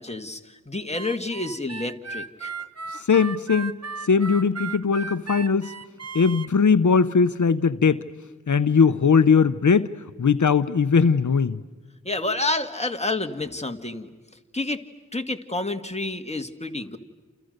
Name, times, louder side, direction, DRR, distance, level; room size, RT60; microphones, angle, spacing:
voice 1, 0.0-2.5 12.0-14.1 14.5-14.8 15.1-17.0, left 2 dB, 20° left, 6 dB, 2.0 m, -29 dB
Harmonica, 0.9-6.5, right 4 dB, 60° right, 1.1 m, -36 dB
voice 2, 2.9-3.7 4.0-5.7 6.1-8.0 8.5-9.9 10.2-11.6, left 5 dB, 80° left, 12 dB, 0.8 m, -19 dB
30.0 x 29.0 x 6.6 m, 1.3 s
wide cardioid pair, 60°, 29 cm